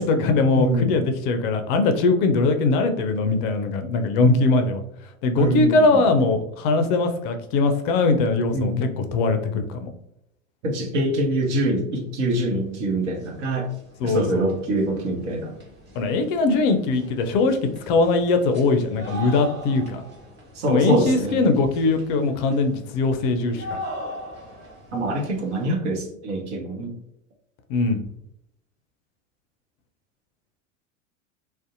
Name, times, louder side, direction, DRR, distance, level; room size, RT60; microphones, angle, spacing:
voice 1, 0.0-4.8 5.2-9.9 14.0-14.5 15.9-20.0 20.7-23.8 27.7-28.0, left 3 dB, 40° left, 6 dB, 0.4 m, -21 dB
voice 2, 0.5-1.0 5.4-6.0 8.5-8.9 9.3-9.6 10.6-13.7 14.0-15.6 20.5-21.4 24.9-27.0, right 1 dB, 60° right, 2 dB, 0.8 m, -24 dB
sound 1, 12.6-12.7 13.0-25.7, equal, 25° right, 1.2 m, -41 dB
2.6 x 2.1 x 2.5 m, 0.76 s
figure-of-eight pair, 85°, 40 cm